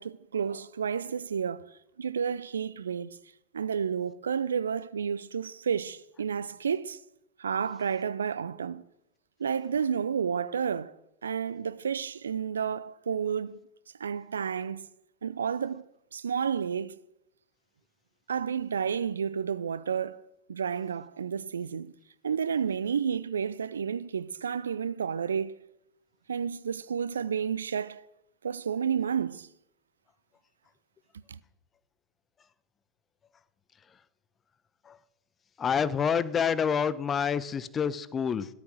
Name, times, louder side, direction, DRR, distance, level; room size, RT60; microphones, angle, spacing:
voice 1, 0.0-3.2 3.5-7.0 7.4-8.8 9.4-11.0 11.2-13.6 14.0-14.9 15.2-15.8 16.1-17.0 18.3-20.2 20.5-21.9 22.2-25.6 26.3-28.1 28.4-29.5 31.3-31.4, right 7 dB, 70° right, 0.6 m, -31 dB
voice 2, 35.6-38.5, left 7 dB, 20° left, 0.9 m, -27 dB
15.5 x 13.0 x 6.4 m
figure-of-eight pair, 90°, 0 cm